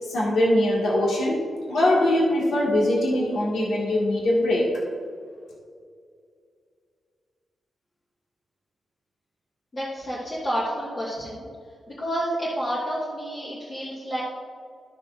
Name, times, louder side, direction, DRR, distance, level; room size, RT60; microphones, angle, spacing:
voice 1, 0.1-1.4 1.7-4.7, left 1 dB, 80° left, -5 dB, 1.7 m, -22 dB
voice 2, 9.7-11.5 11.9-14.2, equal, 20° left, -9 dB, 1.5 m, -29 dB
13.5 x 6.4 x 2.5 m, 2.2 s
wide cardioid pair, 180°, 0 cm